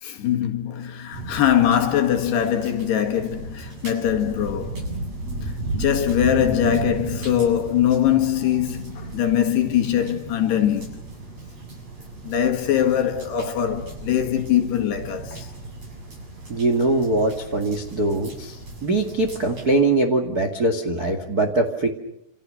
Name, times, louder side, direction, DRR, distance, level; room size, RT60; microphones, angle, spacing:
voice 1, 0.0-4.9 5.7-11.0 12.3-15.5, left 10 dB, 60° left, 3.7 m, -22 dB
sound 1, 1.1-19.8, right 2 dB, 30° right, 8.4 m, -35 dB
voice 2, 16.5-18.5 18.8-21.9, right 2 dB, 50° right, 1.1 m, -22 dB
28.5 x 28.0 x 6.6 m
omnidirectional pair, 5.7 m